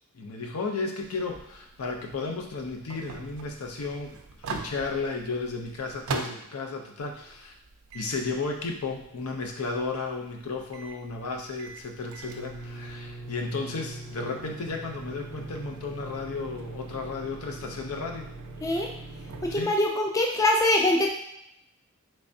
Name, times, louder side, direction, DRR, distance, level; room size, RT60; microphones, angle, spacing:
voice 1, 0.1-4.2 4.4-7.5 7.9-18.3 19.5-19.7, left 3 dB, 75° left, 3 dB, 0.5 m, -33 dB
sound 1, 1.0-6.6 7.0-19.6, right 3 dB, 65° right, 0.4 m, -41 dB
voice 2, 18.6-18.9 19.4-21.1, left 1 dB, 15° left, 1 dB, 0.3 m, -23 dB
3.3 x 3.3 x 2.6 m, 0.80 s
head